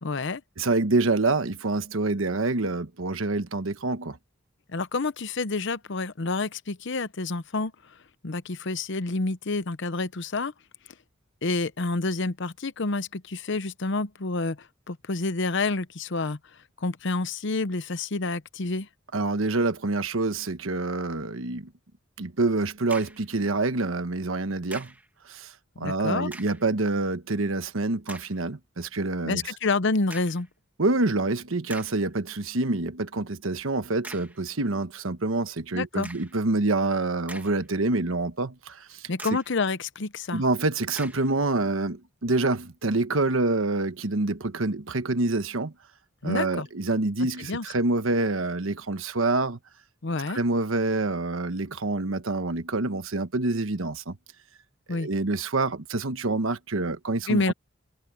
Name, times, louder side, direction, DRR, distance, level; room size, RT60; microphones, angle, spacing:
voice 1, 0.0-0.4 4.7-7.7 8.2-10.5 11.4-14.6 14.9-16.4 16.8-18.9 25.8-26.3 29.3-30.5 35.7-36.1 39.1-40.4 46.2-46.7 47.5-47.6 50.0-50.4 54.9-55.1 57.3-57.5, left 3 dB, 60° left, 0.9 m, -28 dB
voice 2, 0.6-4.2 19.1-21.7 22.2-24.9 25.3-29.5 30.8-39.1 40.3-45.7 46.2-49.6 50.3-54.2 54.9-57.5, right 2 dB, 80° right, 1.2 m, -27 dB
sound 1, 22.9-23.3 24.7-25.1 26.2-26.7 27.3-27.4 28.1-28.4 30.1-30.5 31.2-31.3 31.7-32.1 34.0-34.4 36.0-36.4 37.0-37.8 38.2-38.3 39.2-39.6 40.9-41.3, right 2 dB, 10° right, 1.3 m, -43 dB
head